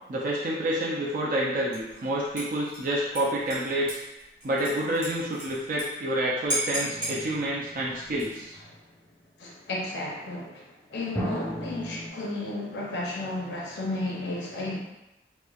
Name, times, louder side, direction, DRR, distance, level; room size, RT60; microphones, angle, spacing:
voice 1, 0.1-4.0 4.4-8.5, right 1 dB, 50° right, -5 dB, 0.4 m, -28 dB
Dishes pots and pans / Liquid, 1.7-2.0 2.4-5.9 6.1-6.2 6.5-7.2 8.0-8.5, right 1 dB, 15° right, 0.9 m, -34 dB
sound 1, 6.8-8.6 11.1-12.1, equal, 10° left, 0.4 m, -36 dB
voice 2, 9.4-14.8, left 2 dB, 75° left, -3 dB, 0.6 m, -33 dB
3.0 x 2.1 x 2.3 m, 0.97 s
head